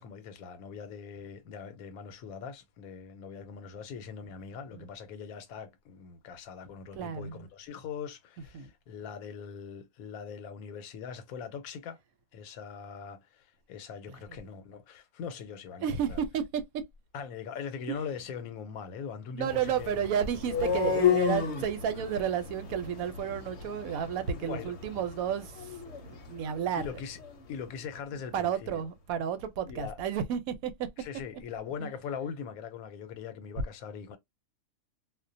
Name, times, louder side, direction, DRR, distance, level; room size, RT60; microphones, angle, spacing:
voice 1, 0.0-12.0 12.3-16.2 17.1-20.1 24.3-24.7 26.8-27.2 27.5-28.9 29.7-30.0 31.0-34.2, left 6 dB, 90° left, 1.1 m, -41 dB
voice 2, 6.9-7.5 8.5-8.7 14.1-14.2 15.8-16.6 19.3-25.7 26.1-26.8 28.3-30.9 31.8-31.9, right 8 dB, 85° right, 1.0 m, -32 dB
sound 1, 19.5-27.4, left 8 dB, 60° left, 0.8 m, -33 dB
2.3 x 2.2 x 2.5 m
omnidirectional pair, 1.5 m